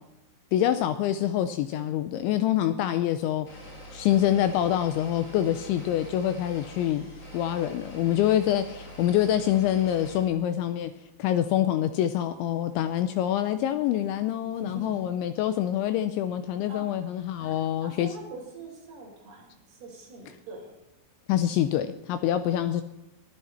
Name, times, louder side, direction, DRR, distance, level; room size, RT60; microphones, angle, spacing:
voice 1, 0.5-10.9 11.2-18.2 21.3-22.8, left 11 dB, 80° left, 11 dB, 2.8 m, -26 dB
sound 1, 3.4-10.2, right 1 dB, 55° left, 8.8 m, -44 dB
voice 2, 14.6-15.0 16.7-16.8 17.3-20.7, right 1 dB, 50° right, -2 dB, 6.8 m, -43 dB
22.5 x 14.5 x 4.3 m, 0.92 s
omnidirectional pair, 5.8 m